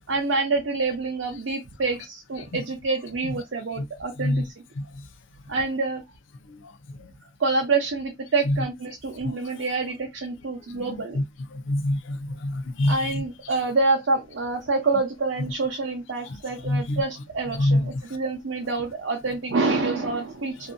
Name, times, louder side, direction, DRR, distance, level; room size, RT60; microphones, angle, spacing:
voice 1, 0.1-4.5 5.5-6.0 7.4-11.2 12.9-20.7, right 3 dB, 80° right, 0.7 m, -27 dB
voice 2, 8.3-8.7 9.2-9.3 10.9-11.2 11.5-13.2 16.3-17.9, left 1 dB, 80° left, 0.5 m, -26 dB
2.7 x 2.5 x 2.3 m
head